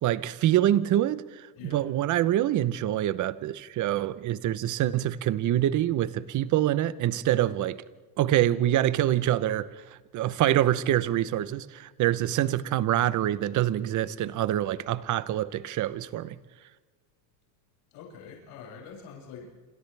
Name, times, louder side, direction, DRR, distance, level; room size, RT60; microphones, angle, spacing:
voice 1, 0.0-7.8 8.2-9.7 10.1-16.4, right 12 dB, 45° right, 0.9 m, -25 dB
voice 2, 17.9-19.5, left 6 dB, 70° left, 7.3 m, -45 dB
28.0 x 27.0 x 3.4 m
cardioid pair, 135°, 42 cm